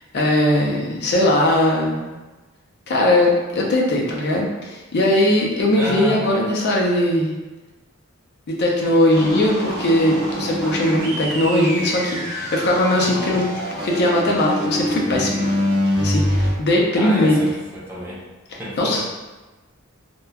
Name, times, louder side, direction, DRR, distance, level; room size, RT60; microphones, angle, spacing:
voice 1, 0.1-2.1 2.9-7.3 8.5-13.4 13.7-15.5 16.0-17.4 18.5-19.0, left 1 dB, 50° left, -2 dB, 0.5 m, -19 dB
voice 2, 5.8-6.3 13.0-13.4 17.0-18.2 18.6-19.0, equal, 10° right, -6 dB, 0.5 m, -29 dB
sound 1, 9.1-16.5, left 1 dB, 50° right, 0.7 m, -25 dB
2.9 x 2.1 x 2.3 m, 1.2 s
head